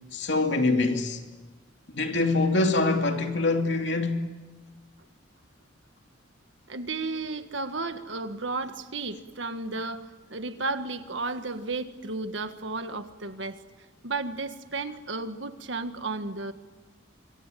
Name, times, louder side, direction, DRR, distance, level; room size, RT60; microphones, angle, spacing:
voice 1, 0.1-1.2 1.9-4.3, left 2 dB, 60° left, 2.7 m, -24 dB
voice 2, 6.7-13.6 14.0-16.5, right 3 dB, 70° right, 1.6 m, -33 dB
26.0 x 24.0 x 9.3 m
head